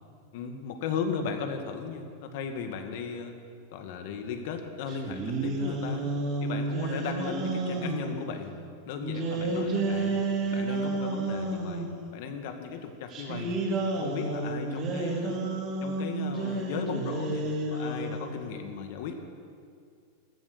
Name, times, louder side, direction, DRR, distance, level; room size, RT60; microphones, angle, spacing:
voice 1, 0.3-3.3 3.7-6.1 6.4-8.5 8.8-10.2 10.5-13.6 14.0-15.4 15.8-19.2, left 6 dB, 65° left, 5 dB, 2.0 m, -36 dB
sound 1, 4.9-8.2 9.0-12.0 13.1-18.3, right 2 dB, 40° right, 3.7 m, -31 dB
15.5 x 13.0 x 6.8 m, 2.3 s
hypercardioid pair, 125°, 0 cm